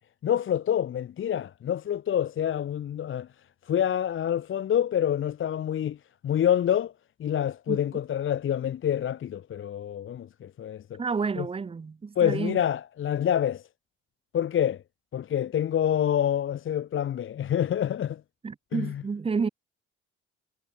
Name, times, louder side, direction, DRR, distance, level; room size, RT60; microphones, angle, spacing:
voice 1, 0.2-3.3 3.7-6.0 6.2-6.9 7.2-11.0 11.4-11.5 12.2-13.6 14.3-14.8 15.1-18.2 18.7-19.0, left 10 dB, 45° left, 0.6 m, -27 dB
voice 2, 11.0-12.6 18.4-19.5, right 5 dB, 20° right, 0.6 m, -30 dB
cardioid pair, 90°, 30 cm